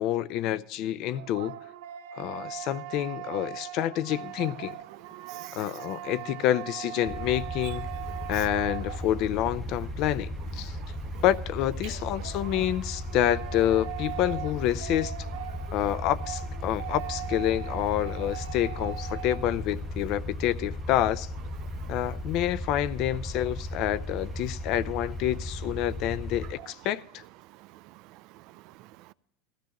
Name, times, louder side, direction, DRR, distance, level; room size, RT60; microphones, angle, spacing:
voice 1, 0.0-1.6 2.1-4.8 5.5-7.9 8.3-10.8 11.2-15.1 15.7-21.3 21.9-27.2, left 12 dB, 50° left, 0.5 m, -28 dB
sound 1, 0.8-9.5 11.8-19.6, right 14 dB, 85° right, 0.9 m, -40 dB
voice 2, 5.2-5.7 8.2-8.4 10.6-11.2 15.5-15.7 21.6-22.0 27.6-27.8 28.1-29.1, right 18 dB, 55° right, 0.4 m, -48 dB
sound 2, 7.1-26.5, left 1 dB, 10° left, 0.7 m, -36 dB
19.5 x 14.5 x 3.0 m
supercardioid pair, 130°, 0 cm